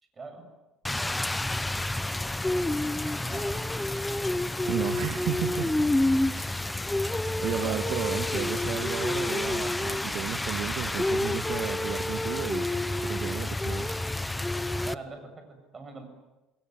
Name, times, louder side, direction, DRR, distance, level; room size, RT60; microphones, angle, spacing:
voice 1, 0.1-0.5 0.9-1.4 3.1-3.7 7.5-8.0 14.8-16.1, right 4 dB, 25° right, 6 dB, 7.4 m, -43 dB
Rain, 0.8-14.9, left 1 dB, 10° left, 0.9 m, -29 dB
voice 2, 4.7-5.7 6.4-6.6 7.4-12.7 13.1-14.0, right 11 dB, 60° right, 7 dB, 1.8 m, -33 dB
28.5 x 21.5 x 9.5 m, 1.0 s
cardioid pair, 120°, 0 cm